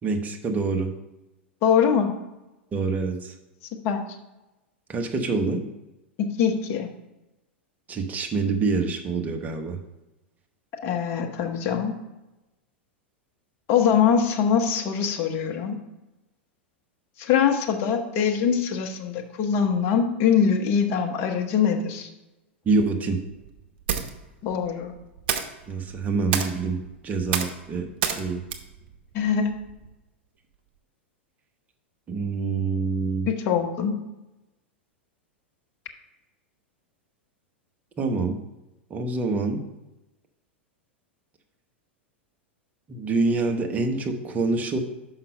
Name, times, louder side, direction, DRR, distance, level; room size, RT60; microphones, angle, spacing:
voice 1, 0.0-0.9 2.7-3.3 4.9-5.6 7.9-9.8 22.6-23.2 25.7-28.4 32.1-33.3 38.0-38.4 38.9-39.6 42.9-44.8, right 3 dB, 25° right, 4 dB, 1.1 m, -26 dB
voice 2, 1.6-2.1 3.8-4.0 6.2-6.9 10.8-11.9 13.7-15.8 17.2-22.1 24.4-24.9 29.1-29.5 33.3-33.9, left 7 dB, 45° left, 4 dB, 1.0 m, -23 dB
sound 1, 23.3-29.9, right 7 dB, 60° right, 0.8 m, -33 dB
5.8 x 5.6 x 5.3 m, 1.0 s
hypercardioid pair, 95°, 6 cm